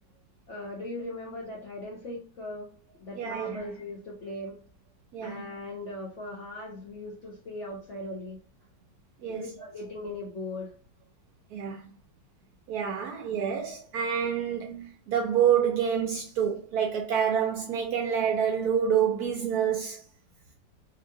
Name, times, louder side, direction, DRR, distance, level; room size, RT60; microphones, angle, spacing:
voice 1, 0.5-2.7 3.0-4.6 5.2-8.4 9.3-10.7, left 2 dB, 65° left, 0.7 m, -39 dB
voice 2, 3.2-3.6 5.1-5.4 9.2-9.4 11.5-11.8 12.7-20.0, right 8 dB, 75° right, 0.9 m, -27 dB
2.8 x 2.7 x 2.6 m
omnidirectional pair, 2.0 m